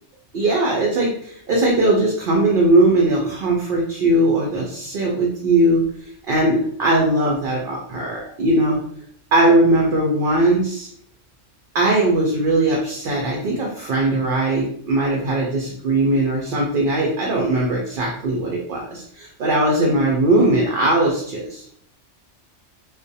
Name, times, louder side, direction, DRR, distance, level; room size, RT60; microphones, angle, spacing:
voice 1, 0.3-5.8 6.3-8.8 9.3-10.9 11.7-21.6, right 1 dB, 60° right, -2 dB, 0.6 m, -19 dB
2.4 x 2.1 x 2.6 m, 0.64 s
omnidirectional pair, 1.3 m